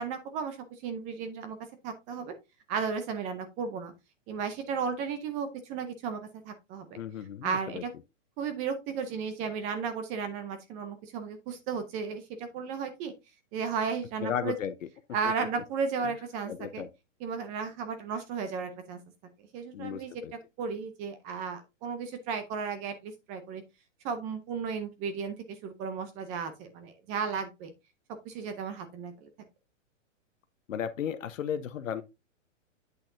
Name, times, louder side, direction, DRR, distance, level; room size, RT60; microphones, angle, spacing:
voice 1, 0.0-1.6 1.8-2.3 2.7-3.9 4.3-7.0 7.4-7.9 8.4-13.1 13.5-14.6 15.1-16.8 17.2-19.0 19.5-23.6 24.0-27.7 28.2-29.3, right 6 dB, 20° right, 0.5 m, -34 dB
voice 2, 6.9-7.8 14.2-14.7 16.5-16.9 19.7-20.3 30.7-32.0, left 9 dB, 90° left, 0.8 m, -34 dB
8.3 x 6.3 x 2.6 m
hypercardioid pair, 145°, 38 cm